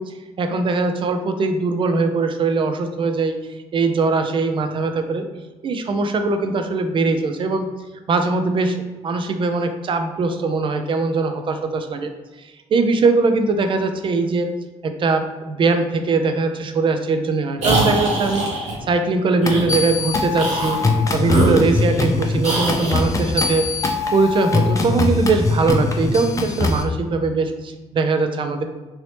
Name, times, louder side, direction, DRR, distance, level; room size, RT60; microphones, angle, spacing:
voice 1, 0.0-3.4 3.7-5.3 5.6-7.7 8.1-12.1 12.4-14.5 14.8-18.5 18.9-20.8 21.1-23.7 24.1-28.6, right 3 dB, 45° right, 7 dB, 0.4 m, -21 dB
sound 1, 17.6-18.8 19.4-19.7 20.3-20.8 21.2-22.1 22.4-23.0, right 2 dB, 70° right, 1.1 m, -22 dB
sound 2, 19.5-26.8, left 3 dB, 25° left, 0.4 m, -22 dB
3.0 x 2.7 x 3.2 m, 1.2 s
cardioid pair, 95°, 12 cm